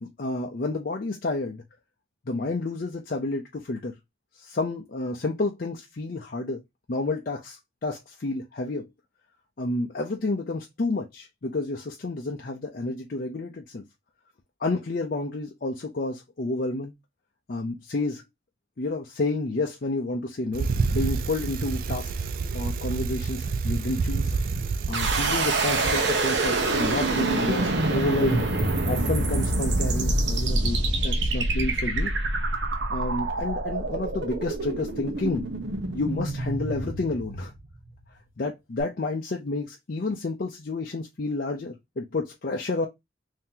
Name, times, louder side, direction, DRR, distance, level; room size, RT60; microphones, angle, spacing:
voice 1, 0.0-1.6 2.3-3.9 4.4-6.6 6.9-8.9 9.6-13.8 14.6-16.9 17.5-18.2 18.8-22.3 22.5-24.3 24.9-28.4 28.8-32.1 32.9-35.5 35.9-37.5 38.4-42.9, left 2 dB, 50° left, 0.5 m, -30 dB
Bicycle, 20.5-26.0, right 4 dB, 50° right, 0.3 m, -28 dB
sound 1, 24.9-37.9, right 2 dB, 70° right, 0.8 m, -26 dB
3.7 x 2.8 x 2.7 m
head